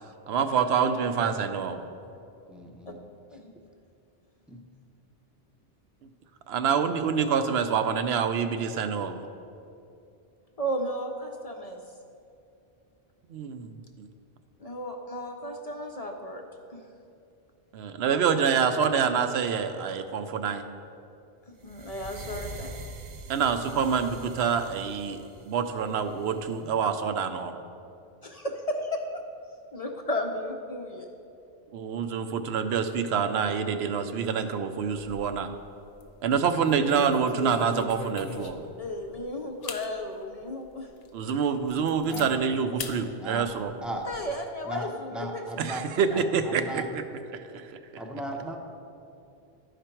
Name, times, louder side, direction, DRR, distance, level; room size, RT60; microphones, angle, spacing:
voice 1, 0.3-1.8 6.5-9.3 13.3-13.7 14.0-14.1 17.7-20.6 23.3-25.2 25.5-27.5 31.7-35.5 36.2-38.6 41.1-43.7 45.6-47.0 47.3-47.6, right 6 dB, 85° right, 8 dB, 0.8 m, -26 dB
voice 2, 1.2-1.6 2.9-3.0 3.3-3.5 10.6-11.8 14.6-16.4 16.7-16.8 21.6-22.8 26.6-26.7 28.2-29.1 29.7-31.1 38.8-40.9 44.1-45.4, equal, 45° left, 3 dB, 0.6 m, -34 dB
voice 3, 2.5-3.0 4.5-4.6 42.1-42.3 43.2-43.5 43.8-44.1 44.6-45.9 46.1-46.9 48.0-48.6, right 1 dB, ahead, 1 dB, 0.6 m, -36 dB
sound 1, 21.6-26.6, right 3 dB, 50° right, 0.4 m, -44 dB
sound 2, 34.8-35.5 35.9-36.1 36.6-38.7 39.2-39.3 39.6-39.9 40.4-40.5 41.0-41.1 41.4-42.3 42.8-43.0 43.4-44.3, left 5 dB, 75° left, 0.9 m, -39 dB
11.5 x 5.0 x 4.4 m, 2.6 s
omnidirectional pair, 1.0 m